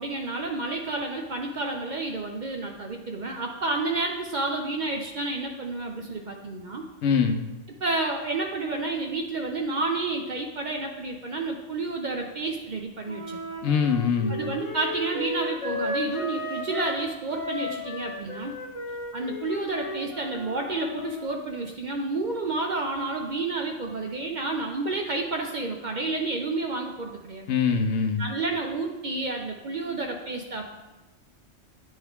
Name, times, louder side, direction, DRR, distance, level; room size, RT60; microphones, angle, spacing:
voice 1, 0.0-6.8 7.8-13.4 14.3-18.5 19.1-27.5 28.2-30.7, right 3 dB, 55° right, 2 dB, 0.6 m, -30 dB
voice 2, 7.0-7.4 13.6-14.4 27.5-28.2, left 6 dB, 70° left, 6 dB, 0.9 m, -23 dB
Wind instrument woodwind instrument, 13.1-17.0 17.3-21.3, left 2 dB, 30° left, 0.8 m, -34 dB
9.6 x 3.6 x 3.5 m, 1.0 s
omnidirectional pair, 1.3 m